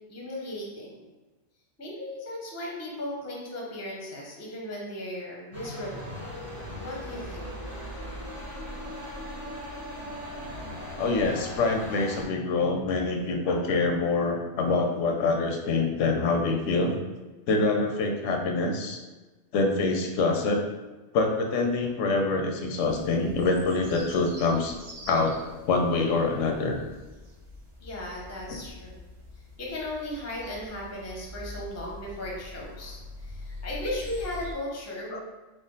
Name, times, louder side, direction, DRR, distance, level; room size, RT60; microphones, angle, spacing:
voice 1, 0.1-1.0 1.8-6.2 6.8-7.4 27.8-29.0 29.6-35.2, left 1 dB, 20° left, -3 dB, 0.5 m, -36 dB
sound 1, 5.5-12.2, equal, 15° right, 0.8 m, -38 dB
voice 2, 11.0-16.9 17.5-19.0 19.5-20.6 21.1-24.8 25.1-26.8 35.1-35.2, left 3 dB, 90° left, 2 dB, 1.0 m, -25 dB
sound 2, 22.8-34.5, left 1 dB, 45° right, 0.4 m, -44 dB
3.6 x 2.1 x 3.8 m, 1.2 s
omnidirectional pair, 1.2 m